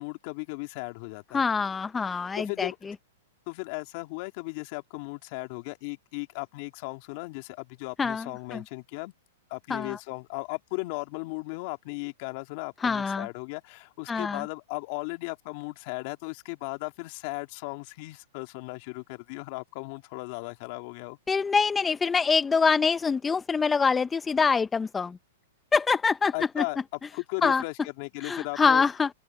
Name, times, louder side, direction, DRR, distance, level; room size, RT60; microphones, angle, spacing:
voice 1, 0.0-1.4 2.1-2.8 3.5-9.1 9.5-21.2 26.3-26.8 27.1-28.8, left 27 dB, 50° left, 2.6 m, -36 dB
voice 2, 1.3-2.7 8.0-8.6 9.7-10.0 12.8-13.3 14.1-14.4 21.3-25.2 25.7-26.6 27.4-27.6 28.2-29.1, left 5 dB, 15° left, 0.5 m, -25 dB
open air
hypercardioid pair, 135°, 0 cm